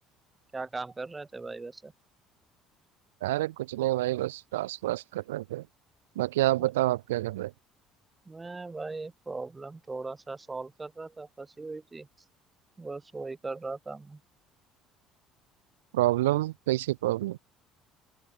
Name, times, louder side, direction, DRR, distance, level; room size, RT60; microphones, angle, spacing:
voice 1, 0.5-1.9 6.6-6.7 8.3-12.1 12.8-14.2, right 3 dB, 20° right, 1.2 m, -39 dB
voice 2, 3.2-5.6 6.1-7.5 15.9-17.4, right 16 dB, 85° right, 1.5 m, -28 dB
open air
hypercardioid pair, 65°, 0 cm